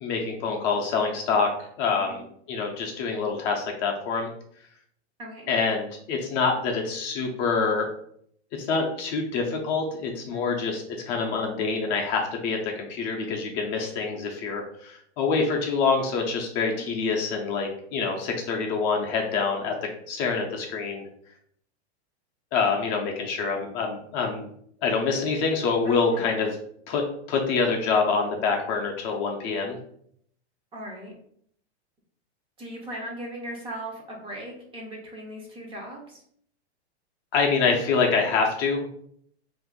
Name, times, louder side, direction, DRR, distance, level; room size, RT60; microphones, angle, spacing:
voice 1, 0.0-4.3 5.5-7.9 8.6-19.7 20.1-21.0 22.5-24.4 24.8-26.6 26.9-27.0 27.3-29.8 37.3-38.9, left 4 dB, 35° left, 1 dB, 0.5 m, -26 dB
voice 2, 5.2-5.5 10.3-10.6 16.8-16.9 25.8-26.3 30.7-31.1 32.6-36.2, right 1 dB, 15° right, -1 dB, 0.5 m, -38 dB
2.6 x 2.5 x 3.7 m, 0.66 s
hypercardioid pair, 140°, 34 cm